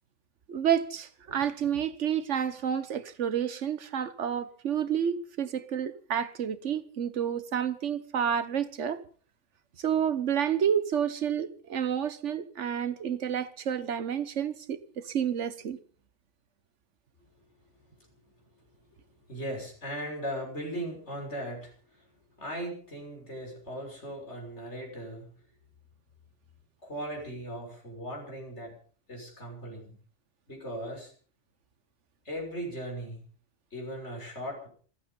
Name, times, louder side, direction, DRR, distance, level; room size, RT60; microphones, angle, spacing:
voice 1, 0.5-9.0 9.8-15.8, right 8 dB, 65° right, 1.4 m, -30 dB
voice 2, 19.3-22.1 22.4-25.3 26.8-28.7 29.1-29.9 30.5-31.1 32.2-33.2 33.7-34.7, equal, 55° left, 6.5 m, -38 dB
27.0 x 9.1 x 5.4 m
omnidirectional pair, 1.4 m